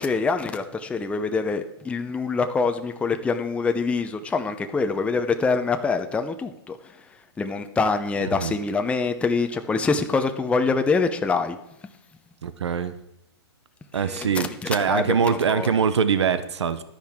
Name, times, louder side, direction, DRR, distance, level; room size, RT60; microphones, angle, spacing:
voice 1, 0.0-7.1 7.4-11.6 13.9-15.8, left 4 dB, 10° left, 7 dB, 0.7 m, -25 dB
voice 2, 12.4-12.9 13.9-16.8, right 6 dB, 80° right, 12 dB, 0.9 m, -23 dB
11.5 x 10.0 x 3.7 m, 0.85 s
hypercardioid pair, 130°, 14 cm